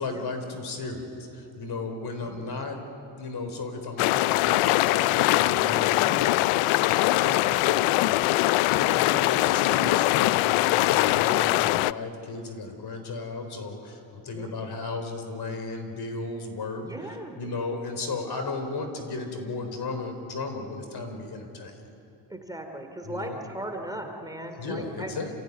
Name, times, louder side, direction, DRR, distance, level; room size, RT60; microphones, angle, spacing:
voice 1, 0.0-2.8 3.2-6.5 7.1-16.8 17.4-21.8 23.0-23.4 24.5-25.3, left 3 dB, 50° left, 6 dB, 4.1 m, -35 dB
sound 1, 4.0-11.9, left 18 dB, 85° left, 0.6 m, -22 dB
voice 2, 8.8-9.3 11.2-11.4 14.3-14.6 16.8-17.4 22.3-25.1, right 1 dB, 10° right, 4 dB, 2.8 m, -38 dB
29.0 x 16.0 x 9.6 m, 2.7 s
cardioid pair, 95°, 48 cm